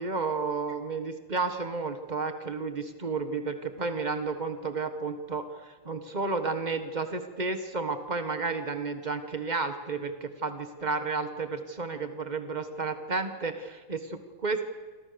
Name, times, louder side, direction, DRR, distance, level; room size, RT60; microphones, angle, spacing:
voice 1, 0.0-14.7, right 4 dB, 65° right, 8 dB, 0.4 m, -32 dB
27.5 x 25.5 x 6.9 m, 1.4 s
omnidirectional pair, 3.3 m